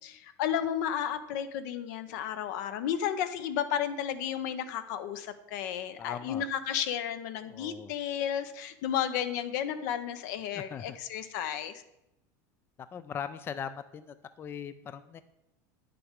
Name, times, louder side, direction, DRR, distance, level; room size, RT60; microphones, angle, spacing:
voice 1, 0.0-11.7, left 9 dB, 70° left, 11 dB, 0.7 m, -33 dB
voice 2, 6.0-6.5 7.5-7.9 10.5-11.0 12.9-15.2, left 7 dB, 25° left, 12 dB, 0.3 m, -40 dB
9.4 x 6.8 x 3.6 m, 0.88 s
supercardioid pair, 125°, 10 cm